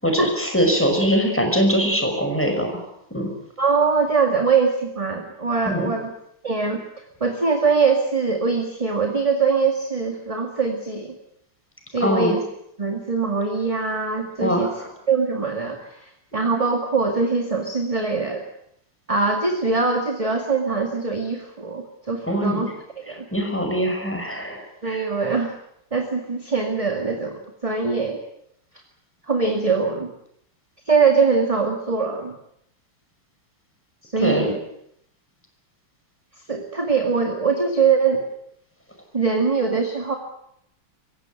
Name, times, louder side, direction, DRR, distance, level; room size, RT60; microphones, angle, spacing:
voice 1, 0.0-2.8 3.1-3.3 5.6-5.9 12.0-12.3 14.4-14.9 22.3-22.6 23.3-25.0 34.2-34.5, equal, 5° left, 3 dB, 5.6 m, -22 dB
voice 2, 3.6-6.1 6.4-6.8 7.2-11.2 11.9-12.4 12.8-14.7 15.1-18.5 19.1-22.7 23.1-23.3 24.8-25.5 25.9-28.2 29.3-30.1 30.9-32.4 34.0-34.6 36.5-38.2 39.1-40.2, right 4 dB, 15° right, 4 dB, 2.0 m, -22 dB
25.5 x 16.0 x 9.2 m, 0.76 s
omnidirectional pair, 2.3 m